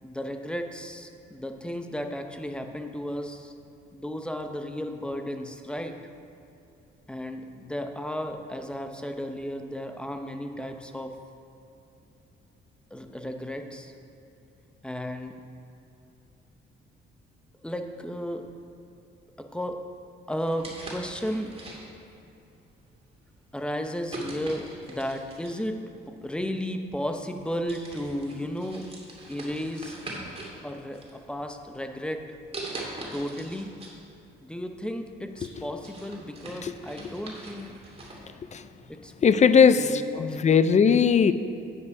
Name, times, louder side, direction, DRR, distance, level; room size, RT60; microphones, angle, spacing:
voice 1, 0.0-3.5 3.9-6.0 7.1-11.2 12.9-13.9 14.8-15.4 17.6-18.5 19.4-19.8 20.3-21.6 23.5-28.9 29.3-30.0 30.6-32.3 33.1-33.7 34.4-37.7 38.9-39.1 39.7-40.7, equal, 5° left, 5 dB, 0.8 m, -34 dB
sound 1, 20.5-22.1 22.8-23.1 24.1-25.7 26.7-26.8 27.3-27.4 27.7-30.6 30.9-31.6 32.5-34.0 34.3-34.4 34.9-38.2, right 2 dB, 30° right, 2.4 m, -41 dB
voice 2, 39.2-41.3, left 6 dB, 35° left, 12 dB, 0.5 m, -19 dB
9.4 x 8.4 x 4.8 m, 2.8 s
cardioid pair, 90°, 20 cm